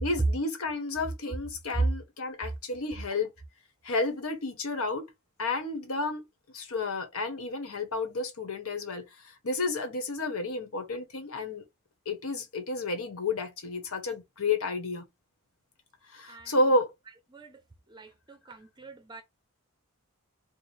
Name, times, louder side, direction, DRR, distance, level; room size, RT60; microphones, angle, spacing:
voice 1, 0.0-3.3 3.8-5.1 5.4-6.2 6.5-11.6 12.1-15.0 16.1-16.9, left 2 dB, 80° left, 1.0 m, -31 dB
voice 2, 16.2-16.6 17.3-17.6 17.9-19.2, right 3 dB, 20° right, 0.5 m, -35 dB
3.2 x 2.0 x 4.2 m
head